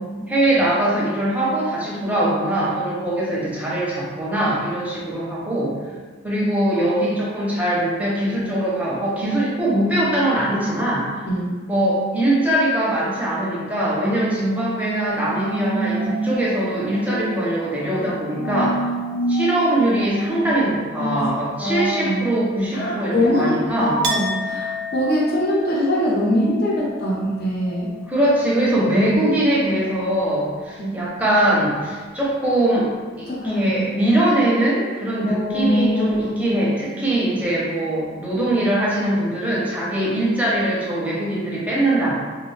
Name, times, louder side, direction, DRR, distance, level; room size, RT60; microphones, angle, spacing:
voice 1, 0.3-5.8 6.2-11.1 11.7-18.8 19.3-24.0 28.1-32.9 33.2-42.2, right 1 dB, 10° right, -6 dB, 0.6 m, -21 dB
sound 1, 14.8-20.3, right 2 dB, 80° left, 0.9 m, -28 dB
voice 2, 21.6-22.3 22.7-27.9 30.8-30.9 33.3-33.7 35.2-36.4, equal, 50° left, -6 dB, 0.6 m, -22 dB
Chink clink, 24.0-29.6 29.8-30.7, left 1 dB, 60° right, 0.3 m, -33 dB
2.4 x 2.2 x 3.1 m, 1.4 s
head